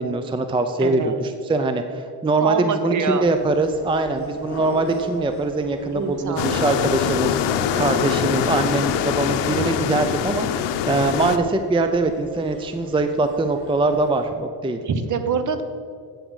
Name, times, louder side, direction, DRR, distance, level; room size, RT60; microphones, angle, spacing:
voice 1, 0.0-14.8, right 3 dB, 10° right, 8 dB, 0.5 m, -23 dB
voice 2, 0.8-1.2 2.4-3.3 5.9-6.8 14.8-15.6, right 5 dB, 45° right, 9 dB, 1.0 m, -25 dB
sound 1, 3.2-14.2, left 2 dB, 30° left, 1.6 m, -41 dB
sound 2, 6.4-11.4, left 8 dB, 80° left, 0.8 m, -23 dB
8.4 x 7.6 x 6.3 m, 2.2 s
cardioid pair, 100°, 42 cm